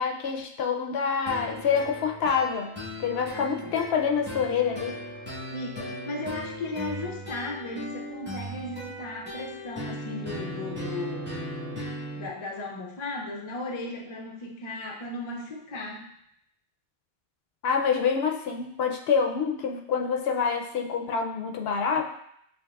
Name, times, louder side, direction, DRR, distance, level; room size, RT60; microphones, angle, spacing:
voice 1, 0.0-2.7 3.0-4.9 17.6-22.1, left 6 dB, 80° left, 3 dB, 0.8 m, -26 dB
sound 1, 1.3-12.3, equal, 10° right, 1.1 m, -37 dB
voice 2, 3.3-3.8 5.5-11.3 12.1-16.1, left 2 dB, 40° left, 1 dB, 0.5 m, -36 dB
7.1 x 2.8 x 2.3 m, 0.73 s
omnidirectional pair, 1.0 m